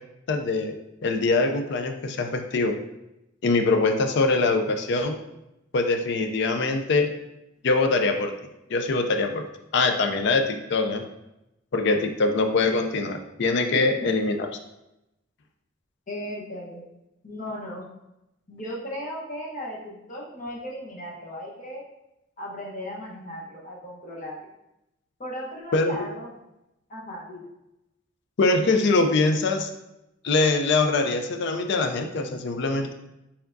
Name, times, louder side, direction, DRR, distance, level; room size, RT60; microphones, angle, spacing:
voice 1, 0.3-0.7 1.0-2.8 3.4-5.2 5.7-7.1 7.6-8.4 8.7-9.4 9.7-11.0 11.7-14.5 25.7-26.0 28.4-29.7 30.2-32.9, left 3 dB, 60° left, 6 dB, 0.4 m, -23 dB
voice 2, 13.7-14.1 16.1-16.8 17.2-17.9 18.5-21.8 22.4-24.5 25.2-26.3 26.9-27.5, equal, 40° left, -3 dB, 1.0 m, -36 dB
4.6 x 3.5 x 2.6 m, 0.90 s
head